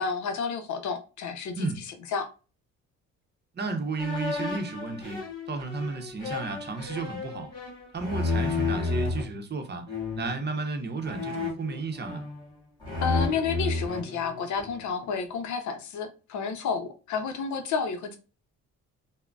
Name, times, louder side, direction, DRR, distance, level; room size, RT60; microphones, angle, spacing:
voice 1, 0.0-1.7 2.1-2.3 13.0-18.2, left 5 dB, 70° left, 0.6 m, -30 dB
voice 2, 3.5-7.5 7.9-12.3, right 3 dB, 35° right, 0.6 m, -33 dB
sound 1, 4.0-9.2 9.9-10.4 11.0-12.5 12.8-14.8, left 3 dB, 15° left, 1.6 m, -31 dB
3.7 x 2.1 x 2.3 m
cardioid pair, 90°, 30 cm